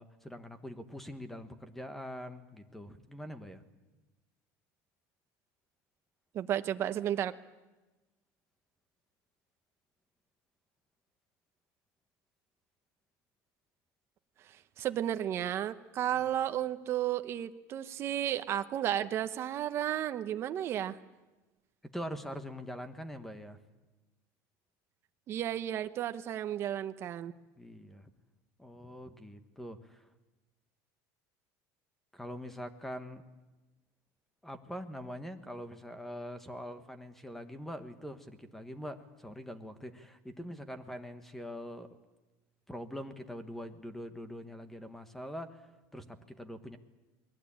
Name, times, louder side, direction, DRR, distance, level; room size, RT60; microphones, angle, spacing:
voice 1, 0.0-3.6 21.9-23.6 27.6-28.1 28.6-30.0 32.1-33.2 34.4-41.9 42.7-45.7 45.9-46.8, equal, 5° left, 10 dB, 1.3 m, -43 dB
voice 2, 6.3-7.3 14.8-21.0 25.3-27.3, right 11 dB, 30° right, 10 dB, 1.0 m, -33 dB
28.5 x 21.0 x 8.7 m, 1.1 s
cardioid pair, 170°, 8 cm